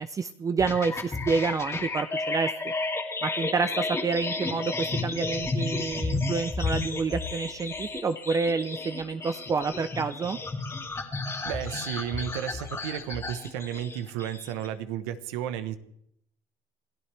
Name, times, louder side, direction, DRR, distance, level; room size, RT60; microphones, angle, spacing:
voice 1, 0.0-2.5 3.2-10.4, right 4 dB, 25° right, 10 dB, 0.6 m, -28 dB
sound 1, 0.6-14.7, left 3 dB, 20° left, 2.5 m, -32 dB
voice 2, 11.4-15.8, right 10 dB, 90° right, 11 dB, 1.2 m, -33 dB
28.5 x 14.5 x 3.5 m, 0.74 s
cardioid pair, 115°, 13 cm